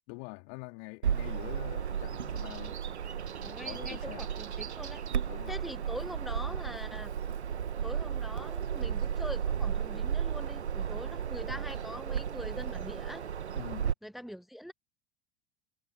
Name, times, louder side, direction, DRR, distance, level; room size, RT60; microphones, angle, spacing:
voice 1, 0.1-2.8 3.5-4.3 5.3-5.6 13.5-13.9, left 39 dB, 50° left, 3.3 m, -45 dB
Bird vocalization bird call bird song, 1.0-13.9, right 8 dB, 75° right, 1.8 m, -34 dB
voice 2, 3.4-5.0 5.5-7.1 7.8-13.2 14.0-14.7, equal, ahead, 1.2 m, -43 dB
figure-of-eight pair, 80°, 33 cm